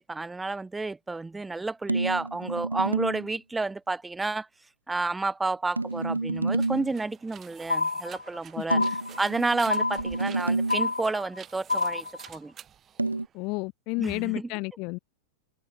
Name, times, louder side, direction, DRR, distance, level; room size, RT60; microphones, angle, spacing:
voice 1, 0.1-4.5 4.9-8.8 9.2-12.5 14.0-14.5, right 3 dB, 10° right, 3.9 m, -30 dB
sound 1, 1.9-3.3 5.8-7.0 8.7-10.9 13.0-13.3, right 2 dB, 80° right, 0.5 m, -29 dB
sound 2, 5.9-13.7, right 9 dB, 25° right, 4.9 m, -50 dB
sound 3, 7.7-8.4 8.7-9.4 9.7-10.4 10.7-11.4 11.7-12.4, left 3 dB, 80° left, 0.6 m, -28 dB
voice 2, 13.3-15.0, left 28 dB, 45° left, 0.8 m, -31 dB
figure-of-eight pair, 90°, 0 cm